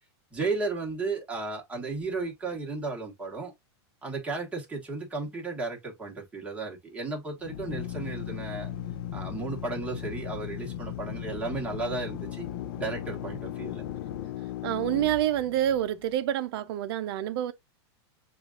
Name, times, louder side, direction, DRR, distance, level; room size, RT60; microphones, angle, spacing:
voice 1, 0.3-3.5 4.0-8.7 9.1-12.5 12.8-13.8, right 3 dB, 10° right, 1.4 m, -34 dB
Drill, 7.4-16.0, left 10 dB, 60° left, 0.5 m, -37 dB
voice 2, 14.6-17.5, right 12 dB, 60° right, 0.6 m, -27 dB
6.8 x 2.5 x 2.4 m
supercardioid pair, 145°, 14 cm